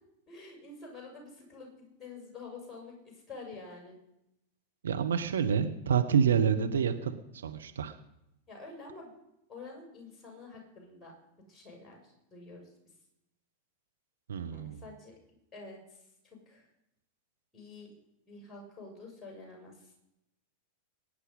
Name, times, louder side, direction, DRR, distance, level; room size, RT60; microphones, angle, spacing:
voice 1, 0.3-4.0 8.5-9.1 9.5-11.1 11.5-12.7 14.5-15.2 15.5-16.0 16.2-16.7 17.5-17.9 18.3-19.9, left 3 dB, 10° left, -1 dB, 6.8 m, -48 dB
voice 2, 4.8-7.1 7.4-8.0 14.3-14.8, right 7 dB, 65° right, 6 dB, 1.1 m, -28 dB
22.0 x 10.0 x 5.5 m, 0.85 s
figure-of-eight pair, 90°, 0 cm